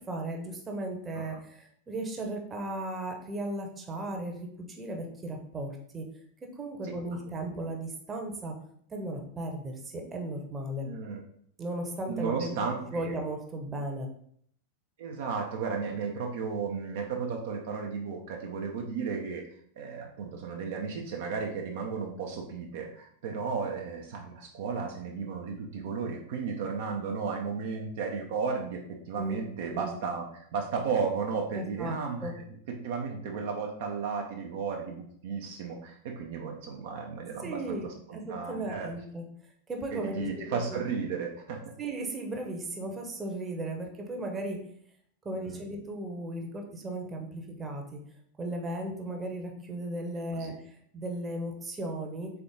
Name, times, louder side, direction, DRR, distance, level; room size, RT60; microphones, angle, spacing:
voice 1, 0.0-6.0 6.6-8.5 8.9-10.9 11.6-12.6 12.9-14.1 29.2-30.0 31.5-31.9 32.2-32.3 37.4-39.2 39.7-40.9 41.8-44.6 45.2-48.0 48.4-52.3, right 1 dB, 20° right, 2 dB, 0.8 m, -36 dB
voice 2, 10.8-11.2 12.1-13.1 15.0-19.4 19.8-28.8 29.1-32.3 32.7-38.9 39.9-41.6 45.3-45.6 50.4-50.5, right 5 dB, 55° right, 1 dB, 0.5 m, -34 dB
3.7 x 3.5 x 3.7 m, 0.65 s
figure-of-eight pair, 90°, 0 cm